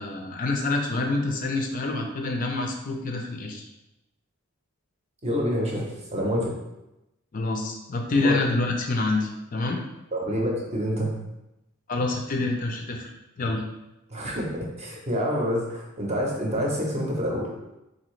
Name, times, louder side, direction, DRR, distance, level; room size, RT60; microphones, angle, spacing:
voice 1, 0.0-3.6 7.3-9.8 11.9-13.1 13.4-13.6, left 2 dB, 40° left, 2 dB, 0.4 m, -27 dB
voice 2, 5.2-6.5 8.1-8.4 10.1-11.1 14.1-17.5, equal, 30° right, -2 dB, 0.7 m, -27 dB
4.0 x 2.7 x 3.1 m, 0.93 s
head